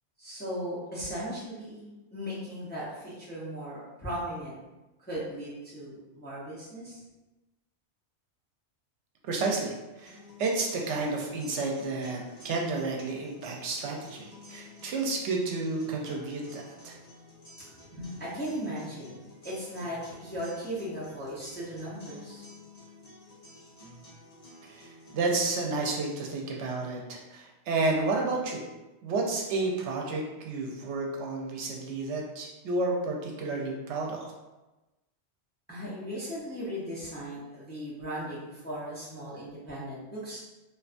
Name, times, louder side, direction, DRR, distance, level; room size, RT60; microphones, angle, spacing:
voice 1, 0.2-4.6 5.0-7.0 17.7-22.4 35.7-40.4, equal, 15° left, -8 dB, 0.5 m, -37 dB
voice 2, 9.3-17.0 24.6-28.6 29.0-34.3, right 3 dB, 85° right, 0 dB, 0.9 m, -31 dB
sound 1, 10.1-26.1, left 1 dB, 40° left, 0.8 m, -52 dB
2.5 x 2.2 x 2.4 m, 1.1 s
omnidirectional pair, 1.1 m